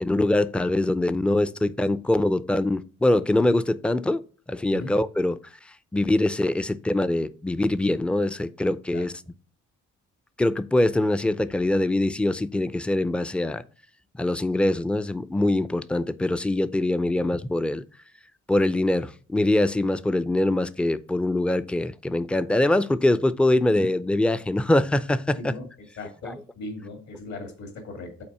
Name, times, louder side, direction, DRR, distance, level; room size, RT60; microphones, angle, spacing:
voice 1, 0.0-4.2 4.5-5.4 5.9-9.1 10.4-13.6 14.2-17.8 18.5-25.5 26.2-26.3, left 1 dB, 5° left, 0.4 m, -23 dB
voice 2, 26.0-28.2, left 2 dB, 70° left, 2.5 m, -38 dB
5.8 x 4.1 x 5.3 m
cardioid pair, 90°, 30 cm